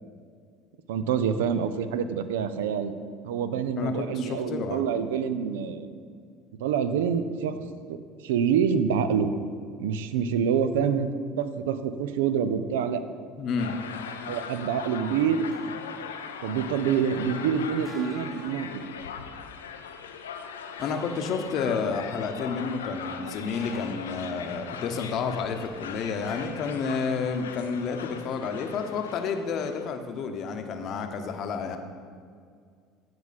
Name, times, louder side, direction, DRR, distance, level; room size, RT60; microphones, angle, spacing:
voice 1, 0.9-2.9 3.2-5.9 6.6-7.6 7.9-8.0 8.2-9.3 9.8-11.1 11.4-13.0 14.3-15.5 16.4-18.8, right 7 dB, 80° right, 11 dB, 0.4 m, -26 dB
voice 2, 3.8-4.8 13.4-13.8 20.8-31.8, left 5 dB, 55° left, 6 dB, 0.8 m, -30 dB
sound 1, 13.6-29.9, left 7 dB, 90° left, 0.4 m, -40 dB
sound 2, 15.5-15.8 17.8-18.6 20.8-21.3 23.5-24.1 26.3-26.6, right 1 dB, 20° right, 1.3 m, -47 dB
9.3 x 4.8 x 4.1 m, 2.1 s
hypercardioid pair, 70°, 0 cm